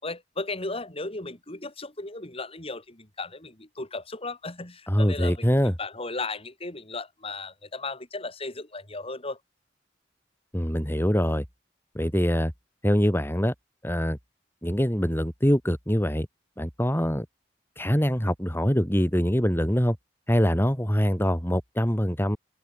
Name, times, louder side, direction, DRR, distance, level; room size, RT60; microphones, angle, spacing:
voice 1, 0.0-5.5 5.8-9.4, left 3 dB, 35° left, 5.3 m, -35 dB
voice 2, 4.9-5.7 10.5-11.4 11.9-12.5 12.8-13.5 13.8-14.2 14.6-16.3 16.6-17.3 17.8-20.0 20.3-22.4, equal, 15° left, 4.4 m, -24 dB
head